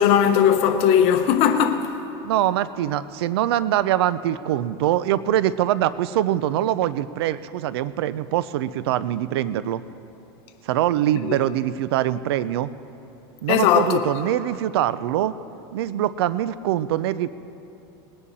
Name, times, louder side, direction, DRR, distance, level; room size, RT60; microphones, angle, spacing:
voice 1, 0.0-1.9 13.5-14.0, left 9 dB, 50° left, 1.0 m, -18 dB
voice 2, 2.2-9.8 10.6-12.7 13.4-15.3 15.7-17.3, right 12 dB, 85° right, 0.5 m, -23 dB
20.0 x 9.9 x 4.1 m
supercardioid pair, 130°, 13 cm